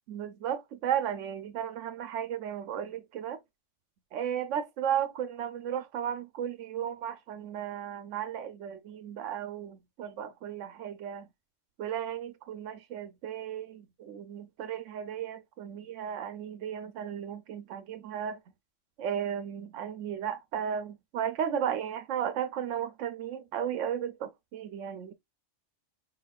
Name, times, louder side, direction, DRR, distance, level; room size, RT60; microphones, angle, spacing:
voice 1, 0.1-3.4 4.1-11.3 11.8-18.4 19.0-25.1, right 9 dB, 85° right, 1.0 m, -34 dB
4.8 x 3.9 x 2.3 m
omnidirectional pair, 1.3 m